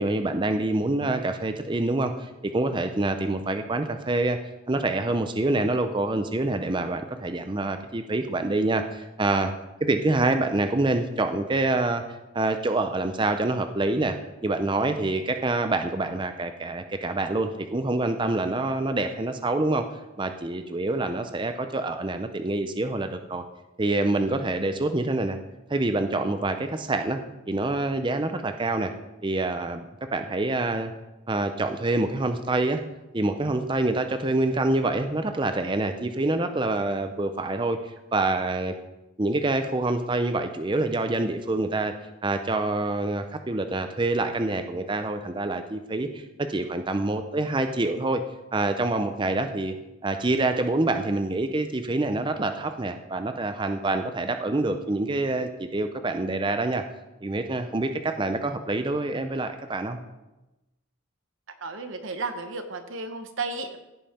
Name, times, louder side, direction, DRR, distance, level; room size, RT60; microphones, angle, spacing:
voice 1, 0.0-4.4 4.7-9.5 9.8-12.0 12.3-14.2 14.4-19.9 20.2-23.4 23.8-25.4 25.7-27.2 27.5-28.9 29.2-29.8 30.1-30.9 31.3-32.8 33.1-38.7 39.2-41.9 42.2-48.2 48.5-49.7 50.0-56.8 57.2-60.0, right 2 dB, 20° right, 8 dB, 0.5 m, -26 dB
voice 2, 61.6-63.8, right 3 dB, 65° right, 7 dB, 0.9 m, -33 dB
15.5 x 5.4 x 4.3 m, 1.0 s
head